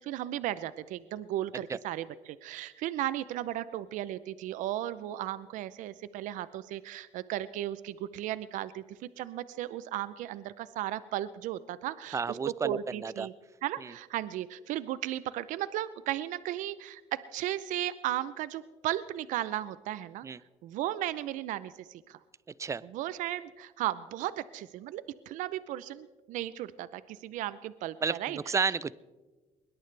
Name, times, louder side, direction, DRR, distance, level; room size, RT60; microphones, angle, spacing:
voice 1, 0.0-13.3 13.6-20.3 20.6-22.2 22.9-28.4, right 13 dB, 80° right, 16 dB, 0.6 m, -35 dB
voice 2, 12.1-13.3 13.8-13.9 20.2-20.4 22.6-22.8 28.0-28.9, right 5 dB, 25° right, 20 dB, 0.5 m, -31 dB
21.0 x 21.0 x 3.3 m, 1.3 s
cardioid pair, 115°, 13 cm